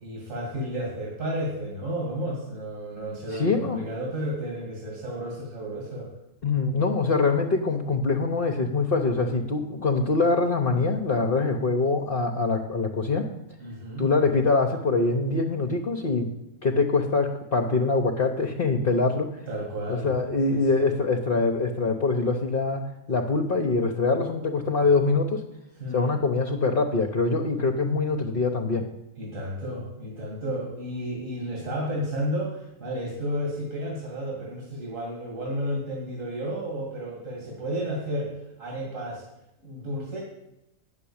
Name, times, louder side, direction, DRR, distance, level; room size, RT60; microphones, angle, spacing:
voice 1, 0.0-6.1 13.6-14.1 19.5-20.1 20.5-20.9 25.8-26.2 28.7-28.8 29.2-39.3 39.6-40.2, equal, 65° right, -1 dB, 2.6 m, -32 dB
voice 2, 3.4-3.8 6.4-13.3 14.0-16.3 16.6-19.3 19.9-25.4 25.9-28.9, left 3 dB, 45° left, 2 dB, 1.0 m, -24 dB
9.1 x 7.0 x 8.6 m, 0.91 s
omnidirectional pair, 1.4 m